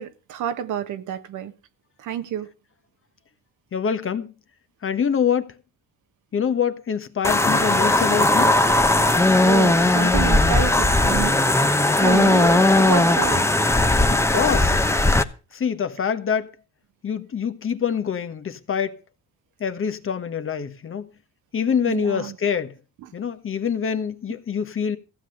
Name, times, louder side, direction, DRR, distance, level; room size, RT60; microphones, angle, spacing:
voice 1, 0.0-1.5 2.0-2.5 9.4-11.4 11.9-13.6 21.8-22.4, right 10 dB, 80° right, 1.4 m, -28 dB
voice 2, 3.7-4.3 4.8-5.5 6.3-8.5 14.1-14.8 15.5-16.5 17.0-19.0 19.6-21.1 21.5-22.7 23.1-25.0, left 7 dB, 45° left, 1.4 m, -25 dB
sound 1, 7.2-15.2, left 2 dB, 10° left, 1.0 m, -18 dB
15.0 x 7.7 x 6.5 m
cardioid pair, 90°, 30 cm